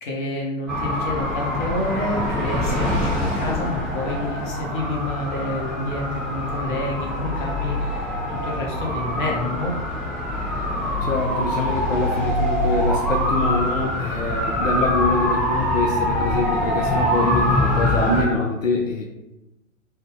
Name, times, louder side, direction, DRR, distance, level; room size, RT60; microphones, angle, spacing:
voice 1, 0.0-9.7, left 1 dB, 40° left, -2 dB, 0.9 m, -28 dB
sound 1, 0.7-18.2, equal, 5° left, 1.0 m, -24 dB
voice 2, 11.0-19.0, left 4 dB, 75° left, 0 dB, 0.6 m, -25 dB
3.3 x 2.2 x 3.3 m, 0.98 s
figure-of-eight pair, 120°, 40 cm